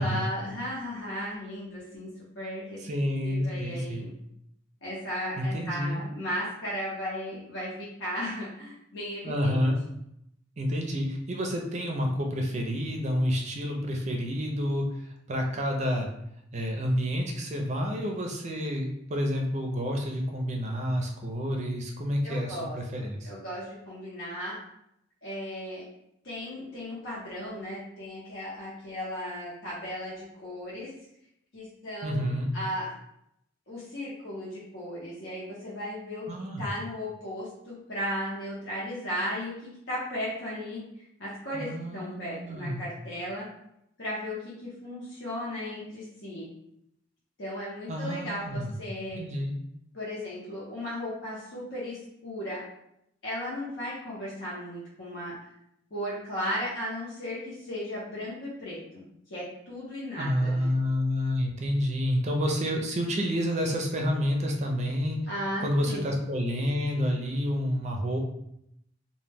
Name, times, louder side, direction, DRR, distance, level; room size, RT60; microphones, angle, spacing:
voice 1, 0.0-2.1 2.3-2.8 3.2-4.1 4.8-9.6 22.2-24.6 25.2-25.8 26.2-30.9 31.5-32.3 32.5-32.9 33.7-36.3 36.6-39.5 39.9-40.8 41.2-43.5 44.0-46.5 47.4-49.2 49.9-52.6 53.2-55.3 55.9-60.7 65.3-66.1, equal, 70° left, -8 dB, 0.7 m, -36 dB
voice 2, 2.8-4.1 5.4-6.0 9.2-9.8 10.6-16.1 16.5-23.3 32.0-32.5 36.3-36.7 41.5-42.8 47.9-48.8 49.2-49.5 60.2-65.2 65.6-68.2, equal, 35° right, 1 dB, 0.4 m, -29 dB
2.1 x 2.1 x 3.3 m, 0.78 s
head